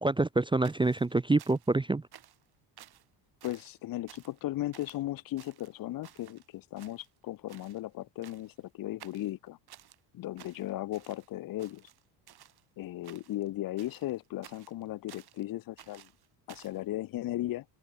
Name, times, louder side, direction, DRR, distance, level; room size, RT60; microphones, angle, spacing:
voice 1, 0.0-2.1, right 2 dB, 10° right, 0.7 m, -26 dB
sound 1, 0.6-1.8 2.1-2.5 2.8-3.1 3.4-3.8 4.1-4.4 4.7-5.0 5.4-6.5 6.8-7.2 7.5-7.8 8.2-8.6 9.0-10.0 10.4-11.3 11.6-12.6 13.0-13.5 13.8-15.4 15.8-16.8, right 11 dB, 50° right, 2.0 m, -55 dB
voice 2, 3.4-9.6 10.1-11.9 12.8-16.1 16.5-17.6, left 15 dB, 45° left, 0.7 m, -36 dB
open air
supercardioid pair, 90°, 49 cm